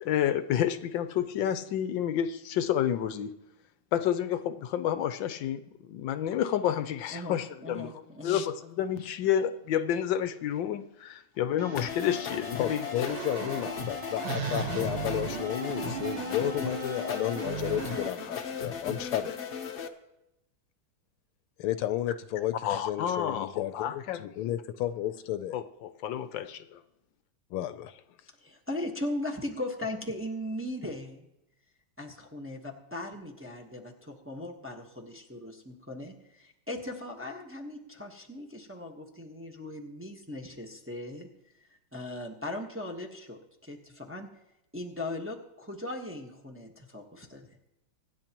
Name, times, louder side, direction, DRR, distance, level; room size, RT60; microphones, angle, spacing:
voice 1, 0.0-3.3 3.9-12.8 22.6-24.2 25.5-26.8, left 10 dB, 70° left, 11 dB, 1.2 m, -30 dB
voice 2, 7.1-8.4 28.4-31.2 32.0-41.3 41.6-44.3 44.7-47.5, left 1 dB, 10° right, 0 dB, 0.8 m, -38 dB
sound 1, 11.6-18.1, right 5 dB, 80° right, 2.0 m, -37 dB
sound 2, 11.7-19.9, left 6 dB, 50° left, 0.8 m, -37 dB
voice 3, 12.6-19.4 21.6-25.5 27.5-28.0, left 12 dB, 90° left, 11 dB, 1.5 m, -32 dB
24.5 x 10.5 x 3.0 m, 0.90 s
omnidirectional pair, 2.3 m